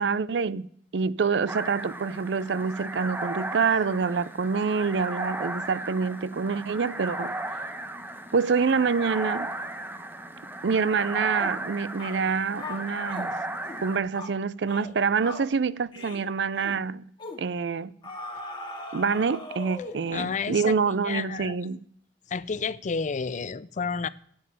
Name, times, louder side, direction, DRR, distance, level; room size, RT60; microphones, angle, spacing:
voice 1, 0.0-7.4 8.3-9.5 10.6-13.3 13.8-17.1 17.4-17.9 18.9-21.8, right 5 dB, 75° right, 0.5 m, -26 dB
sound 1, 1.5-14.0, right 1 dB, 10° right, 1.0 m, -36 dB
Ooooh Owww mixdown, 11.4-11.6 12.0-12.2 12.6-13.3 13.6-13.9 14.1-14.4 14.7-14.9 15.2-15.5 15.9-16.2 16.5-16.8 17.2-17.4 18.0-20.1, left 2 dB, 30° left, 2.2 m, -39 dB
voice 2, 20.1-20.8 21.0-21.6 22.3-24.1, left 5 dB, 45° left, 0.5 m, -30 dB
8.9 x 8.4 x 8.6 m
head